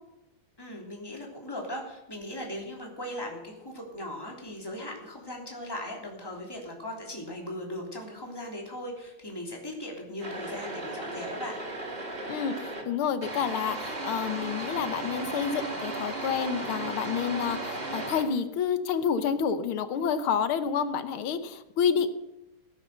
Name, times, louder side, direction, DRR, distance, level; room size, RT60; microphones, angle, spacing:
voice 1, 0.6-11.6, left 1 dB, 10° left, -1 dB, 3.0 m, -38 dB
sound 1, 10.2-12.8 13.2-18.2, right 2 dB, 30° right, 2.5 m, -35 dB
voice 2, 12.3-22.1, left 7 dB, 85° left, 11 dB, 1.9 m, -29 dB
17.0 x 9.5 x 6.6 m, 0.90 s
omnidirectional pair, 2.3 m